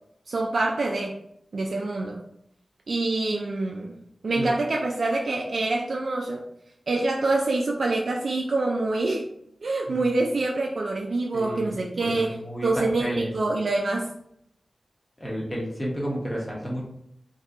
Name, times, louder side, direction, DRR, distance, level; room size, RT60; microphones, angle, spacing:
voice 1, 0.3-1.2 1.5-2.2 2.9-4.0 4.2-6.4 6.9-9.3 9.6-14.1, right 2 dB, 75° right, 0 dB, 0.3 m, -26 dB
voice 2, 11.3-13.3 15.2-16.8, equal, 15° left, -5 dB, 1.1 m, -32 dB
2.7 x 2.4 x 3.5 m, 0.73 s
wide cardioid pair, 70°, 0 cm